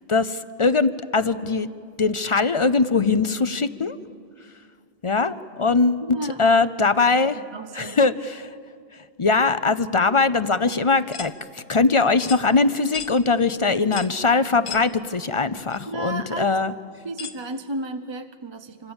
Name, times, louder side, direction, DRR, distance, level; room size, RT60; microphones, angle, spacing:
voice 1, 0.1-1.7 2.0-4.0 5.0-7.4 7.7-8.5 9.2-16.7, left 4 dB, 35° left, 13 dB, 0.6 m, -21 dB
voice 2, 6.0-6.6 7.3-8.1 15.9-16.5 17.0-18.9, right 2 dB, 30° right, 8 dB, 0.6 m, -33 dB
sound 1, 11.1-11.3 12.2-12.4 12.9-13.1 13.9-14.2 14.6-14.9 15.7-15.8 17.2-17.4, left 6 dB, 80° left, 1.5 m, -35 dB
27.5 x 26.0 x 7.2 m, 2.3 s
omnidirectional pair, 1.2 m